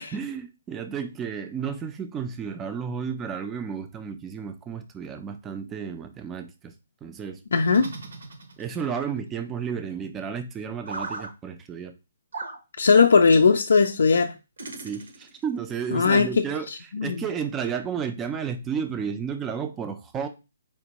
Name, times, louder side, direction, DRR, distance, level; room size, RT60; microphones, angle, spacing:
voice 1, 0.0-6.7 7.0-7.4 8.6-11.9 14.8-16.7 17.0-20.3, right 7 dB, 10° right, 0.3 m, -32 dB
voice 2, 7.5-7.9 12.8-14.3 15.9-17.1, left 5 dB, 80° left, 0.3 m, -19 dB
sound 1, 7.7-8.9 10.8-11.3 12.3-12.6 13.3-13.5 14.6-15.4, right 3 dB, 75° right, 0.8 m, -37 dB
4.4 x 2.5 x 2.9 m
hypercardioid pair, 165°, 0 cm